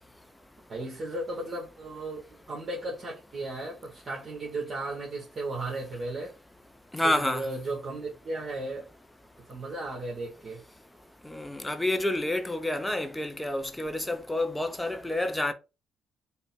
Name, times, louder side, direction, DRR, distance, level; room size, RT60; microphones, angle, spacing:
voice 1, 0.7-6.3 7.0-8.9 9.5-10.6, right 2 dB, 45° right, 1.3 m, -35 dB
voice 2, 6.9-7.5 11.2-15.5, left 1 dB, 10° left, 0.6 m, -29 dB
3.8 x 2.1 x 4.0 m
cardioid pair, 90°, 0 cm